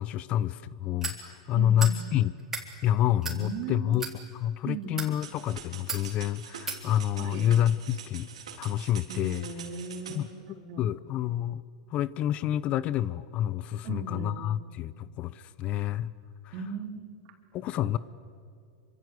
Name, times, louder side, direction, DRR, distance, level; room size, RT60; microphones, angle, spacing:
voice 1, 0.0-2.3 2.8-4.1 4.3-8.3 8.6-9.5 10.1-11.6 11.9-16.1 17.5-18.0, left 11 dB, 40° left, 18 dB, 0.7 m, -28 dB
sound 1, 1.0-1.2 1.8-2.0 2.4-2.7 3.2-3.4 3.9-4.1 4.8-5.1 5.9-6.0 6.7-6.8, right 4 dB, 15° right, 3.6 m, -34 dB
voice 2, 1.5-2.1 3.3-4.0 4.6-5.0 7.2-7.5 9.1-10.9 13.8-14.5 16.5-17.2 17.7-18.0, right 4 dB, 50° right, 3 dB, 3.9 m, -38 dB
sound 2, 5.2-10.2, right 7 dB, 85° right, 3.8 m, -45 dB
26.5 x 25.0 x 8.1 m, 2.4 s
hypercardioid pair, 125°, 3 cm